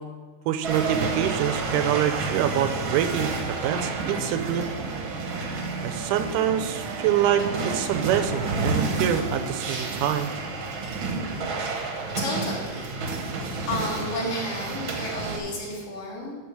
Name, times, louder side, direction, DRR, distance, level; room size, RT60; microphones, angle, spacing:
voice 1, 0.5-4.7 5.8-10.3, right 10 dB, 85° right, 9 dB, 2.0 m, -26 dB
sound 1, 0.6-15.4, right 3 dB, 65° right, 1.3 m, -30 dB
voice 2, 11.6-12.8 13.7-16.3, left 1 dB, 70° left, -3 dB, 3.3 m, -32 dB
11.5 x 4.0 x 6.4 m, 1.4 s
omnidirectional pair, 3.6 m